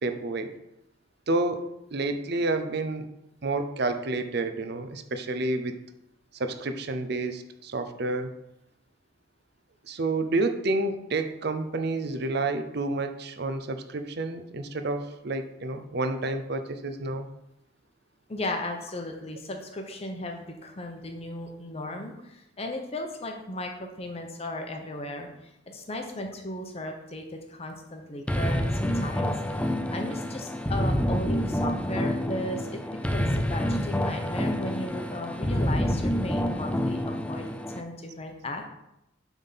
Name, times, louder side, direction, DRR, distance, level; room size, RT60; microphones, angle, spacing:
voice 1, 0.0-0.5 1.3-1.6 1.9-3.1 3.4-5.8 6.4-8.3 9.9-17.3, right 2 dB, 55° right, 8 dB, 0.6 m, -29 dB
voice 2, 18.3-32.8 33.1-38.7, left 1 dB, 30° left, 4 dB, 0.8 m, -36 dB
sound 1, 28.3-37.8, equal, 5° left, 0.4 m, -28 dB
7.4 x 3.6 x 5.7 m, 0.84 s
head